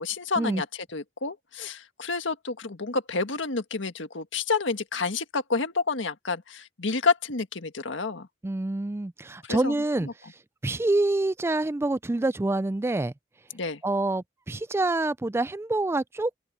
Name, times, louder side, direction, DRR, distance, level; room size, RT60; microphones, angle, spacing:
voice 1, 0.0-8.3 9.4-9.7 10.0-10.1 13.5-13.8, left 4 dB, 85° left, 1.7 m, -29 dB
voice 2, 8.4-10.1 10.6-13.1 13.8-16.4, right 2 dB, 15° right, 0.3 m, -26 dB
open air
head